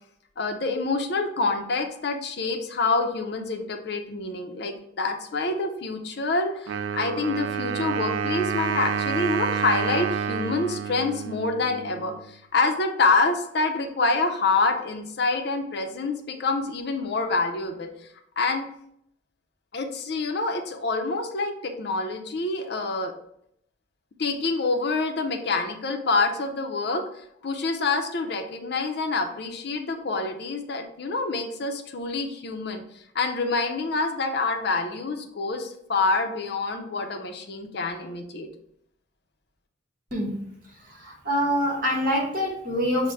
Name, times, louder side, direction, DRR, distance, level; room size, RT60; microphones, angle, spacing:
voice 1, 0.4-17.9 18.4-18.7 19.7-23.1 24.2-27.0 27.4-32.8 33.1-38.5, left 3 dB, 55° left, 5 dB, 0.5 m, -26 dB
Wind instrument woodwind instrument, 6.7-12.3, right 7 dB, 85° right, 0.3 m, -29 dB
voice 2, 41.0-43.1, equal, 45° right, -1 dB, 1.2 m, -25 dB
6.1 x 2.1 x 3.2 m, 0.73 s
head